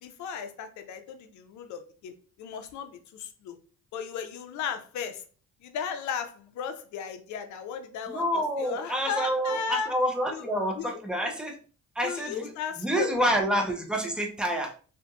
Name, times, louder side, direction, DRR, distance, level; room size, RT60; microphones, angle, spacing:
voice 1, 0.0-3.6 3.9-5.2 5.6-9.9 10.3-10.5 10.8-11.0 12.0-13.3, left 7 dB, 70° left, 0.5 m, -36 dB
voice 2, 8.1-11.6 12.0-12.5 12.8-14.7, equal, 5° right, 0.6 m, -28 dB
2.7 x 2.5 x 2.3 m
cardioid pair, 90°, 30 cm